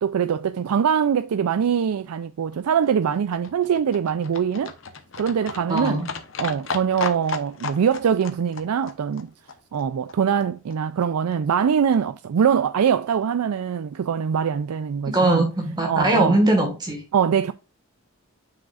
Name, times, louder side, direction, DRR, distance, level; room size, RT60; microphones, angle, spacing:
voice 1, 0.0-4.7 5.2-6.1 6.4-9.3 9.7-15.5 15.9-16.4 17.1-17.5, right 7 dB, 85° right, 0.4 m, -23 dB
Livestock farm animals working animals, 2.2-10.4 10.7-10.8 11.0-11.1 11.3-11.4 11.6-11.7 11.9-12.0 12.3-12.4 12.6-12.7 12.9-13.0, left 4 dB, 60° left, 0.9 m, -35 dB
voice 2, 5.7-6.1 15.1-17.0, right 1 dB, 20° right, 1.6 m, -21 dB
7.5 x 6.2 x 2.4 m
head